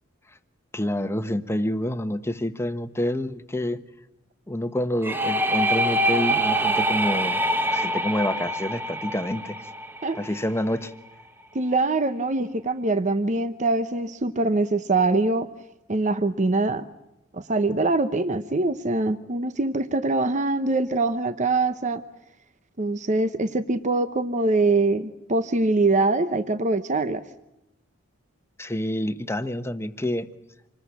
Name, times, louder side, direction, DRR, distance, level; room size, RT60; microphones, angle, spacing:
voice 1, 0.7-3.8 4.5-7.4 7.7-9.6 10.2-10.9 28.6-30.3, left 1 dB, 15° left, 10 dB, 1.2 m, -27 dB
sound 1, 5.0-10.7, right 1 dB, 10° right, 1.2 m, -25 dB
voice 2, 11.5-15.5 15.9-16.9 17.3-22.0 22.8-27.2, right 2 dB, 35° right, 11 dB, 0.9 m, -23 dB
27.0 x 20.5 x 8.4 m, 0.91 s
head